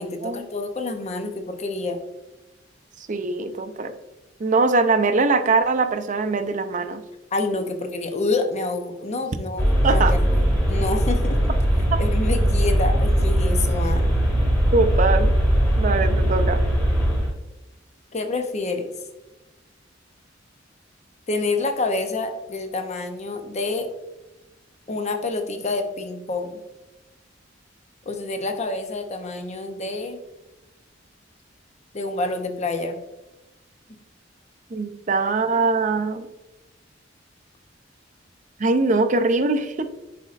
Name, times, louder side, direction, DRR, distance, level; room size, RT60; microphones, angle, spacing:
voice 1, 0.0-2.0 7.3-10.4 10.7-11.5 12.0-14.1 18.1-18.9 21.3-23.9 24.9-26.6 28.1-30.2 31.9-33.0, left 3 dB, 35° left, 6 dB, 0.7 m, -28 dB
voice 2, 3.1-3.9 4.4-7.0 9.8-10.2 14.7-15.3 15.8-16.6 34.7-36.3 38.6-39.9, right 3 dB, 40° right, 9 dB, 0.5 m, -22 dB
sound 1, 9.6-17.3, equal, 5° left, 2.1 m, -20 dB
10.0 x 4.2 x 2.5 m, 1.0 s
head